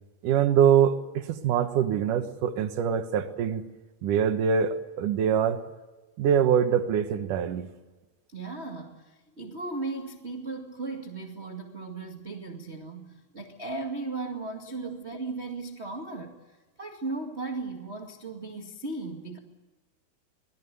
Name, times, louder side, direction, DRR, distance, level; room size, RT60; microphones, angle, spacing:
voice 1, 0.2-3.6 4.0-5.6 6.2-7.7, right 8 dB, 65° right, 8 dB, 2.3 m, -24 dB
voice 2, 8.3-19.4, right 3 dB, 45° right, 2 dB, 0.8 m, -36 dB
27.5 x 19.5 x 7.0 m, 1.2 s
omnidirectional pair, 5.2 m